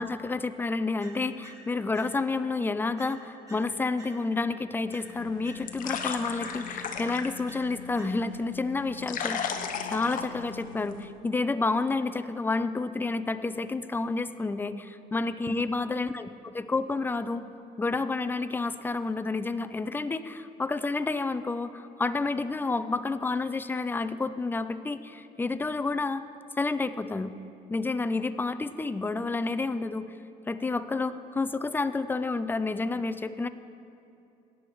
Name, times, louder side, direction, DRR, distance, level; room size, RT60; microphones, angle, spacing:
voice 1, 0.0-9.6 9.9-16.2 16.5-17.4 17.8-26.2 26.6-27.3 27.7-30.1 30.5-33.5, left 3 dB, 10° left, 11 dB, 0.3 m, -30 dB
sound 1, 1.0-2.5 3.0-4.5 4.9-8.5, right 1 dB, 20° right, 2.8 m, -52 dB
sound 2, 5.1-11.1, left 7 dB, 55° left, 0.8 m, -36 dB
17.0 x 9.3 x 3.1 m, 2.7 s
cardioid pair, 110°, 17 cm